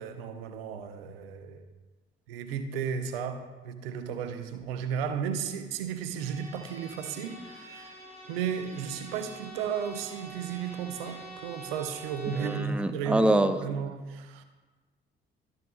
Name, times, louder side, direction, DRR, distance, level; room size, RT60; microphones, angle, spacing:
voice 1, 0.0-1.7 2.3-8.0 8.3-14.4, right 7 dB, 75° right, 0.6 m, -34 dB
Bowed string instrument, 6.1-12.8, right 1 dB, 25° right, 2.8 m, -46 dB
voice 2, 12.4-13.6, right 1 dB, 5° right, 0.6 m, -25 dB
12.5 x 7.5 x 2.3 m
figure-of-eight pair, 45°, 29 cm